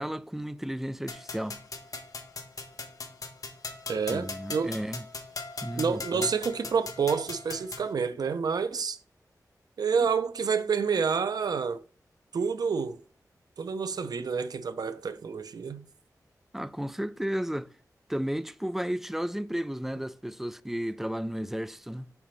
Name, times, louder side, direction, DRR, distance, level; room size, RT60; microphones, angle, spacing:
voice 1, 0.0-1.6 4.1-5.0 5.6-6.3 10.0-10.1 16.5-17.7 18.1-22.1, equal, 5° right, 0.4 m, -33 dB
sound 1, 1.1-7.9, left 3 dB, 60° left, 1.1 m, -40 dB
voice 2, 3.9-4.7 5.7-9.0 9.8-11.8 12.3-13.0 13.6-15.9, right 5 dB, 80° right, 0.5 m, -28 dB
7.1 x 4.9 x 3.2 m
wide cardioid pair, 90°, 7 cm